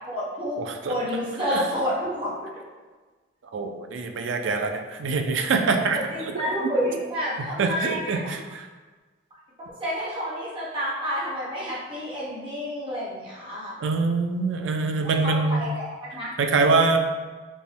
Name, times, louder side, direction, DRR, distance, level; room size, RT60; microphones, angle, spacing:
voice 1, 0.1-0.6 0.9-2.3 5.9-8.4 9.6-13.8 15.2-16.3, equal, 25° right, -8 dB, 1.1 m, -29 dB
voice 2, 3.5-6.0 7.4-8.6 13.8-15.6 16.4-17.0, right 4 dB, 70° right, 4 dB, 0.4 m, -24 dB
5.2 x 2.1 x 3.3 m, 1.3 s
head